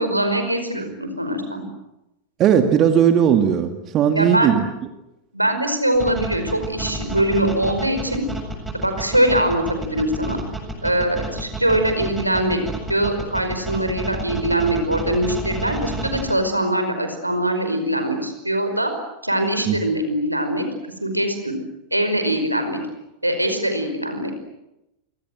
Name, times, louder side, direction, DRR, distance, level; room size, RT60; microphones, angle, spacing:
voice 1, 0.0-1.6 4.1-4.6 5.3-8.2 8.7-10.4 10.8-12.6 12.9-18.9 19.2-20.7 21.0-21.5 21.9-22.8 23.2-24.4, right 1 dB, 85° right, 7 dB, 5.2 m, -22 dB
voice 2, 2.4-4.7 19.7-19.8, right 8 dB, 35° right, 7 dB, 2.3 m, -17 dB
sound 1, 5.9-16.3, right 2 dB, 10° right, 7.8 m, -30 dB
29.5 x 25.5 x 7.8 m, 0.91 s
figure-of-eight pair, 90°, 0 cm